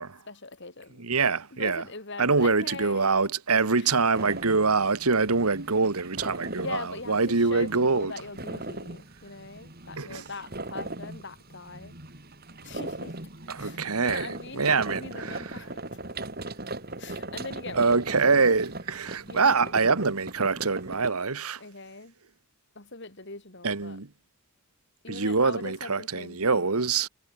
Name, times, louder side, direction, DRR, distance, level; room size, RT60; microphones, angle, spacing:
voice 1, 0.3-1.0 1.5-3.9 6.5-12.0 12.6-13.2 13.6-15.8 17.0-18.0 19.3-19.7 21.6-22.1 22.7-24.0 25.0-26.7, left 3 dB, 55° left, 3.1 m, -41 dB
voice 2, 1.0-1.8 2.2-8.1 10.0-10.2 13.5-15.6 17.8-21.6 23.6-24.1 25.1-27.1, right 4 dB, 85° right, 1.6 m, -25 dB
sound 1, 4.1-21.1, right 2 dB, 45° right, 3.7 m, -39 dB
head